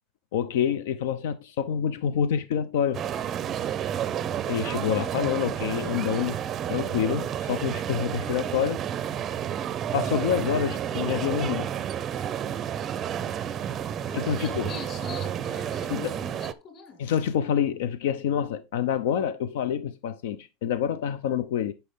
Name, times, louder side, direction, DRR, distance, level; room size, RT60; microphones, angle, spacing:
voice 1, 0.3-3.0 4.5-6.4 6.7-8.8 9.9-11.7 14.1-14.7 15.9-16.1 17.0-21.7, left 9 dB, 80° left, 0.7 m, -27 dB
sound 1, 2.9-16.5, right 9 dB, 25° right, 0.5 m, -31 dB
voice 2, 14.1-17.1, left 6 dB, 30° left, 2.2 m, -43 dB
10.5 x 5.7 x 3.6 m
supercardioid pair, 170°, 0 cm